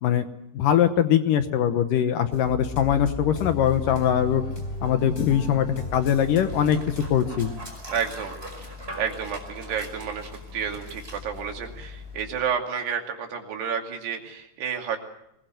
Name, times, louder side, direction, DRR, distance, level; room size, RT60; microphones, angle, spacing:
voice 1, 0.5-4.4 4.8-7.5, left 10 dB, 70° left, 9 dB, 2.3 m, -22 dB
sound 1, 2.3-7.5, left 1 dB, 25° left, 4.4 m, -35 dB
Dog, 2.6-12.5, left 2 dB, 15° right, 5.1 m, -41 dB
voice 2, 7.9-8.4 9.0-15.0, right 7 dB, 80° right, 3 dB, 4.6 m, -30 dB
24.0 x 20.5 x 7.8 m, 0.79 s
omnidirectional pair, 4.6 m